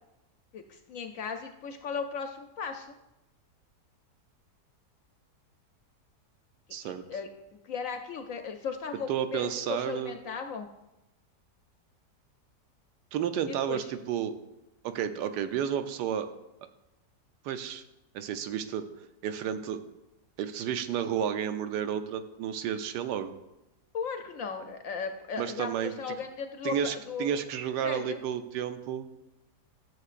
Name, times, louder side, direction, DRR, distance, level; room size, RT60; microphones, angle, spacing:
voice 1, 0.5-2.9 6.8-10.7 13.5-13.8 23.9-26.8 27.1-27.3 27.8-28.2, left 5 dB, 65° left, 6 dB, 0.9 m, -36 dB
voice 2, 6.7-7.0 9.1-10.2 13.1-14.3 14.8-16.3 17.4-17.8 18.1-18.9 19.2-19.8 20.4-23.3 25.4-25.9 26.6-29.1, right 9 dB, 90° right, 9 dB, 1.2 m, -31 dB
14.0 x 6.7 x 2.5 m, 0.96 s
omnidirectional pair, 1.7 m